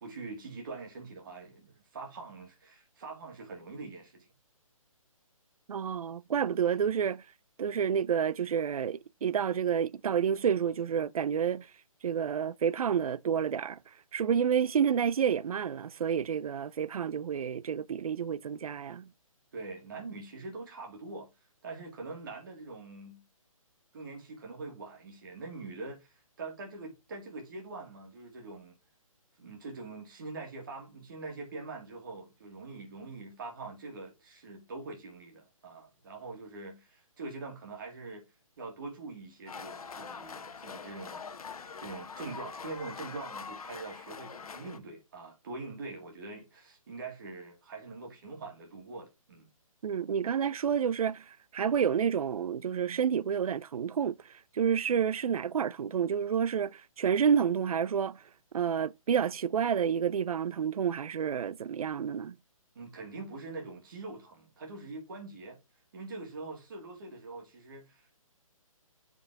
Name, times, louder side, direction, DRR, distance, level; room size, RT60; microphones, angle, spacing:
voice 1, 0.0-4.3 19.5-21.3 21.6-23.2 23.9-28.7 29.4-38.2 38.6-49.5 62.7-65.6 65.9-68.2, right 3 dB, 35° right, 2.1 m, -43 dB
voice 2, 5.7-7.2 7.6-11.7 12.0-13.8 14.1-19.1 49.8-51.2 51.5-54.1 54.5-58.2 58.5-62.4, right 7 dB, 80° right, 0.4 m, -29 dB
sound 1, 39.5-44.8, left 5 dB, 80° left, 1.0 m, -44 dB
5.4 x 5.1 x 3.4 m
hypercardioid pair, 175°, 18 cm